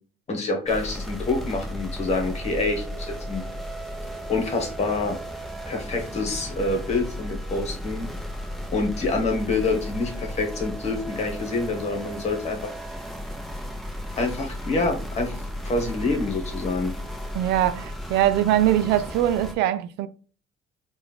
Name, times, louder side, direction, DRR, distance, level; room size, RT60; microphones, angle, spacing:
voice 1, 0.3-3.4 4.3-5.2 5.7-8.1 8.7-12.7 14.2-16.9, left 3 dB, 40° left, 1.4 m, -27 dB
sound 1, 0.7-19.5, equal, ahead, 1.0 m, -34 dB
voice 2, 17.3-20.1, right 12 dB, 85° right, 0.4 m, -22 dB
4.6 x 2.5 x 3.6 m
cardioid pair, 110°, 17 cm